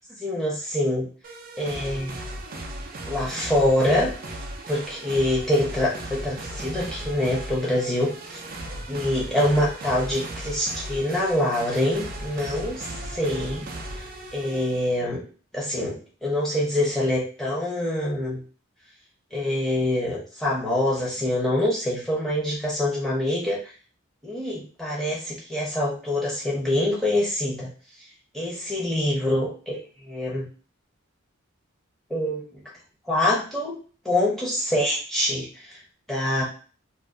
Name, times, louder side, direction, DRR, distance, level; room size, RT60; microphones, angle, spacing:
voice 1, 0.1-1.1 1.6-2.2 3.1-4.1 4.7-8.4 8.9-13.7 13.9-14.0 14.3-15.2 15.5-18.4 19.3-23.7 24.2-27.7 28.3-29.8 30.0-30.5 32.1-32.6 33.1-33.8 34.0-35.8 36.1-36.4, left 1 dB, ahead, -6 dB, 0.8 m, -25 dB
sound 1, 1.2-15.0, right 1 dB, 40° right, 0.4 m, -36 dB
2.5 x 2.4 x 2.6 m, 0.37 s
head